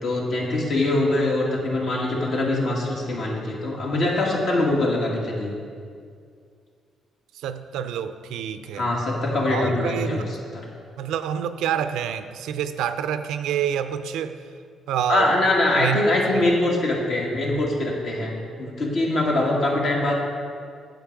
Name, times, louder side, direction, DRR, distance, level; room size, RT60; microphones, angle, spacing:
voice 1, 0.0-5.5 8.7-10.2 10.5-10.6 15.1-20.2, left 2 dB, 65° left, -2 dB, 1.9 m, -23 dB
voice 2, 7.3-8.9 9.5-10.3 11.0-14.4 14.9-15.4 15.7-16.0 16.3-16.4, right 9 dB, 85° right, 10 dB, 0.4 m, -27 dB
9.0 x 7.2 x 4.6 m, 2.2 s
cardioid pair, 90°, 0 cm